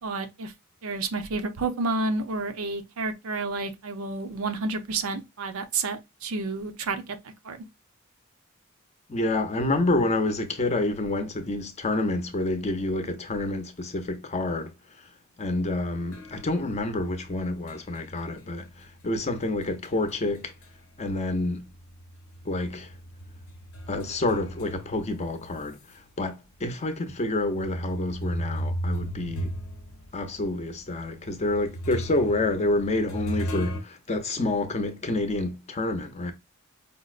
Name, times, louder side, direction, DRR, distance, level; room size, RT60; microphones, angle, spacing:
voice 1, 0.0-0.5 0.8-7.2 7.4-7.7, right 3 dB, 80° right, 0.6 m, -30 dB
voice 2, 9.1-15.1 15.4-20.5 21.0-21.7 22.4-22.9 23.9-29.5 30.1-36.3, left 2 dB, 30° left, 0.6 m, -28 dB
sound 1, 16.0-21.0 21.3-25.9 26.5-26.6 27.4-33.8, equal, 75° left, 0.7 m, -37 dB
5.1 x 2.0 x 2.4 m
head